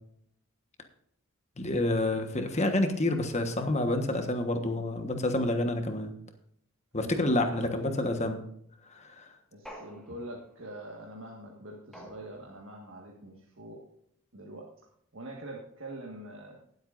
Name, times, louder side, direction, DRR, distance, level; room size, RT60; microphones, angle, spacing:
voice 1, 1.6-6.1 6.9-8.4 8.9-9.3, left 1 dB, 35° left, 6 dB, 1.3 m, -28 dB
voice 2, 7.0-8.2 9.5-13.9 14.3-14.7 15.1-16.6, right 1 dB, 65° right, -1 dB, 1.7 m, -44 dB
sound 1, 9.7-10.7 11.9-12.8, equal, ahead, 1.7 m, -49 dB
20.0 x 8.0 x 2.6 m, 0.70 s
head